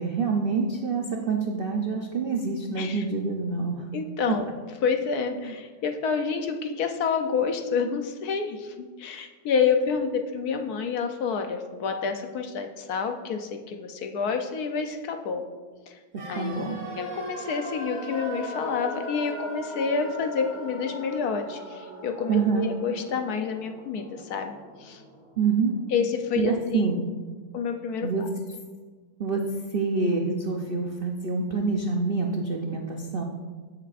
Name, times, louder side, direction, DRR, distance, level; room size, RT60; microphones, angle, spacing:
voice 1, 0.0-3.8 5.4-5.5 16.1-16.8 22.3-22.7 25.4-25.8 26.4-27.0 28.0-28.2 29.2-29.5 29.7-33.2, right 4 dB, 80° right, 2 dB, 0.5 m, -26 dB
voice 2, 3.9-4.5 4.8-15.4 15.9-16.0 16.3-16.6 17.0-25.0 25.9-27.0 27.5-28.3, left 5 dB, 65° left, 5 dB, 1.1 m, -28 dB
sound 1, 16.2-26.1 26.4-26.5, equal, 25° right, 1.8 m, -39 dB
15.0 x 6.7 x 2.5 m, 1.4 s
omnidirectional pair, 1.9 m